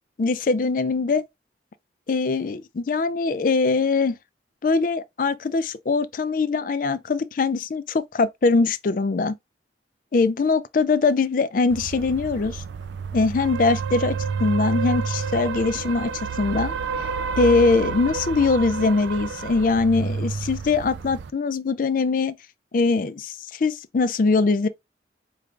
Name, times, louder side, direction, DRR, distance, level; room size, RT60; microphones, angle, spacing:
voice 1, 0.2-1.2 2.1-4.1 4.6-9.3 10.1-12.6 13.1-16.1 16.4-16.7 17.4-22.3 22.7-24.7, left 4 dB, 50° left, 0.4 m, -22 dB
sound 1, 11.7-21.3, right 5 dB, 75° right, 0.4 m, -29 dB
4.8 x 2.5 x 3.2 m
head